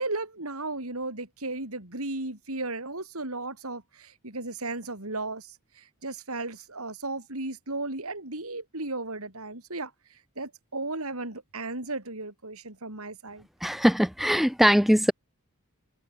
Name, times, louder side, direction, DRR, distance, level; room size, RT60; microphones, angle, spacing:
voice 1, 0.0-9.9 10.4-13.5, right 2 dB, 70° right, 5.3 m, -35 dB
voice 2, 13.6-15.1, equal, ahead, 1.2 m, -21 dB
head